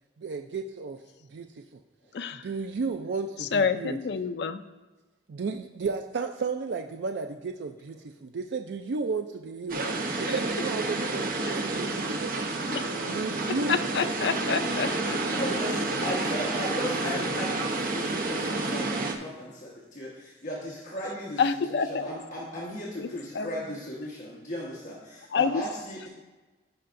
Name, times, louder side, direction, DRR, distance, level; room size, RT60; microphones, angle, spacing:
voice 1, 0.2-1.0 1.3-1.6 2.4-4.0 5.3-9.8 10.2-12.5 13.0-13.8, right 4 dB, 75° right, 5 dB, 0.4 m, -33 dB
voice 2, 2.1-2.5 3.4-4.6 10.2-10.3 11.5-11.6 12.7-12.8 13.6-15.2 21.4-22.2 23.0-23.6 25.3-25.6, left 5 dB, 65° left, 9 dB, 0.4 m, -28 dB
sound 1, 9.7-19.1, right 2 dB, 50° right, 0.8 m, -29 dB
voice 3, 15.3-21.4 21.7-26.1, equal, 45° left, -5 dB, 1.3 m, -36 dB
15.5 x 5.6 x 2.6 m, 1.2 s
head